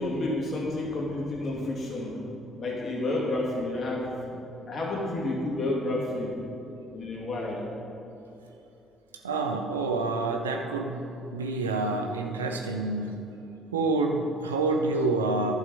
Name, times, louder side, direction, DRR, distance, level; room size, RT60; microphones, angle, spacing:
voice 1, 0.0-2.3 2.6-4.2 4.7-6.4 6.9-7.7, left 2 dB, 50° left, -3 dB, 2.5 m, -30 dB
voice 2, 9.2-13.1 13.7-15.5, right 3 dB, 90° right, 3 dB, 0.6 m, -28 dB
11.0 x 6.6 x 5.4 m, 2.9 s
hypercardioid pair, 45°, 0 cm